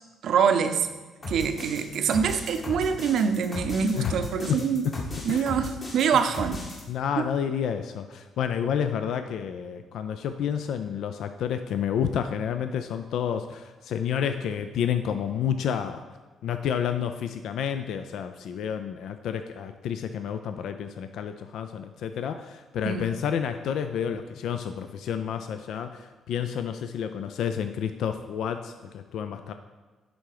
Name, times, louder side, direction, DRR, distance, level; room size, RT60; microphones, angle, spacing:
voice 1, 0.2-0.9 1.3-4.9 5.2-6.6 7.2-7.3 22.8-23.1, right 6 dB, 70° right, 8 dB, 0.6 m, -25 dB
sound 1, 1.2-6.8, left 1 dB, 40° left, 2.1 m, -36 dB
voice 2, 4.5-4.9 5.3-5.5 6.1-6.2 6.9-16.0 16.4-29.5, left 8 dB, 75° left, 8 dB, 0.4 m, -30 dB
10.5 x 3.8 x 4.8 m, 1.3 s
cardioid pair, 90°, 0 cm